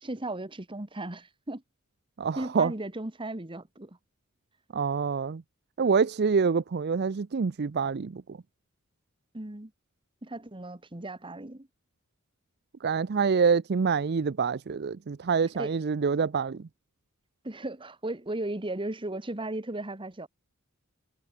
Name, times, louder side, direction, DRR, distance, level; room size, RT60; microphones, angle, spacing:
voice 1, 0.0-1.6 2.3-4.0 9.3-9.7 10.2-11.7 15.6-15.7 17.4-20.3, right 2 dB, 25° right, 1.5 m, -36 dB
voice 2, 2.2-2.7 4.7-5.4 5.8-8.4 12.8-16.6, right 5 dB, 50° right, 0.5 m, -26 dB
head